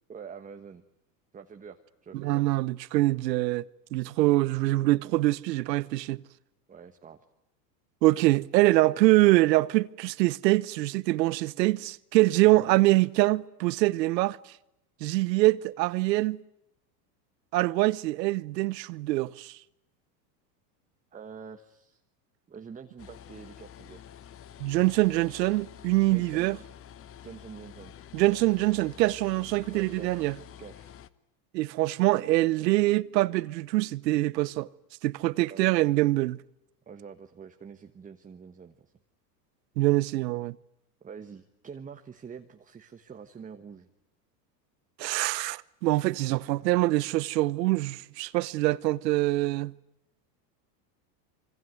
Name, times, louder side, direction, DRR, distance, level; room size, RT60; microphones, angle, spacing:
voice 1, 0.1-0.8 1.3-2.4 6.7-7.2 12.4-12.8 21.1-22.0 22.5-24.0 26.1-26.7 27.2-28.0 29.7-30.9 35.5-35.6 36.9-38.9 41.0-43.9, right 6 dB, 15° right, 1.3 m, -46 dB
voice 2, 2.1-3.6 3.9-6.2 8.0-14.4 15.0-16.4 17.5-19.6 24.6-26.6 28.1-30.3 31.5-34.7 35.0-36.4 39.8-40.6 45.0-49.7, right 18 dB, 80° right, 1.0 m, -24 dB
sound 1, 23.0-31.1, left 10 dB, 25° left, 1.0 m, -48 dB
25.5 x 24.5 x 9.4 m
supercardioid pair, 125°, 50 cm